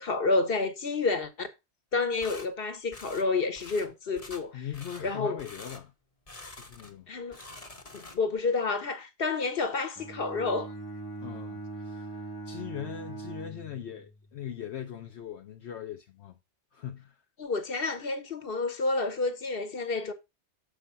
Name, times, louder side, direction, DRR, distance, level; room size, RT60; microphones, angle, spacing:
voice 1, 0.0-1.5 1.9-4.7 5.0-5.4 7.1-7.4 7.9-10.7 17.4-20.1, left 3 dB, 55° left, 1.3 m, -29 dB
sound 1, 2.2-2.5 2.9-3.3 3.6-3.9 4.2-4.5 4.7-5.1 5.4-5.8 6.3-7.0 7.2-8.4, left 2 dB, 35° left, 1.2 m, -46 dB
voice 2, 4.5-5.9 6.5-7.1 11.2-16.4 16.7-17.2, left 10 dB, 75° left, 1.0 m, -40 dB
Bowed string instrument, 10.0-14.2, right 3 dB, 20° left, 1.4 m, -41 dB
6.9 x 5.0 x 5.6 m
omnidirectional pair, 1.2 m